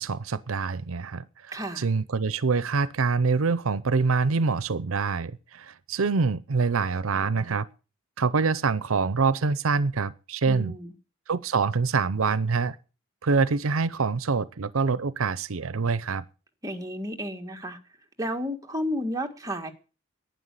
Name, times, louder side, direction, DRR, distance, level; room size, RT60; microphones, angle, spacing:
voice 1, 0.0-7.7 8.2-10.8 11.3-12.8 13.2-16.2, right 4 dB, 85° right, 0.7 m, -25 dB
voice 2, 1.5-1.9 10.5-10.9 16.6-17.8 18.2-19.7, equal, 15° right, 1.7 m, -32 dB
11.5 x 9.4 x 8.3 m
head